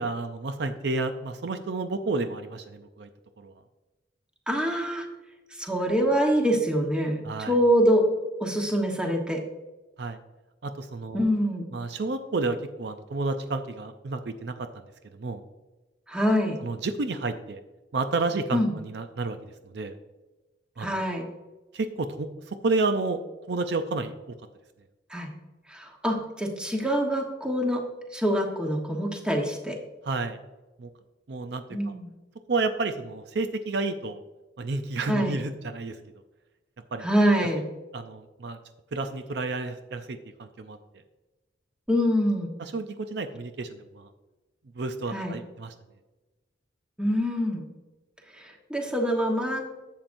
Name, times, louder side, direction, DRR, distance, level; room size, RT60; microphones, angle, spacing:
voice 1, 0.0-3.1 3.4-3.5 7.2-7.5 10.0-10.2 10.6-11.2 11.7-14.7 15.2-15.4 16.6-17.6 17.9-19.4 19.6-19.9 20.8-20.9 21.7-23.2 23.5-24.1 30.0-30.4 30.8-30.9 31.3-31.6 32.5-34.2 34.6-36.0 36.9-37.1 37.9-38.6 38.9-40.8 42.6-44.1 44.8-45.7, right 3 dB, 60° right, 8 dB, 0.5 m, -30 dB
voice 2, 4.5-5.1 5.5-8.1 8.4-9.4 11.1-11.7 16.1-16.6 18.5-18.7 20.8-21.3 25.1-25.3 25.7-27.8 28.1-29.8 31.7-32.1 35.1-35.4 37.0-37.7 41.9-42.5 45.1-45.4 47.0-47.7 48.3-49.7, equal, 5° right, 1 dB, 1.1 m, -25 dB
11.0 x 7.5 x 2.6 m, 1.1 s
head